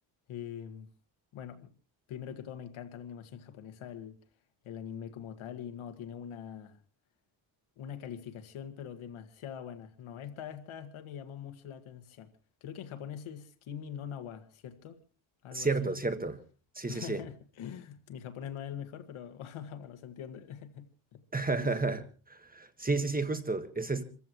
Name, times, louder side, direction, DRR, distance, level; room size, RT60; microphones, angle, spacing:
voice 1, 0.3-0.9 1.3-1.7 2.1-4.2 4.6-6.8 7.8-12.3 12.6-15.0 15.4-16.0 16.9-21.2 21.6-21.8, left 9 dB, 80° left, 1.9 m, -43 dB
voice 2, 15.5-16.4 16.7-17.2 21.3-22.0 22.3-24.0, right 3 dB, 20° right, 1.6 m, -31 dB
28.0 x 15.0 x 3.1 m
cardioid pair, 95°, 48 cm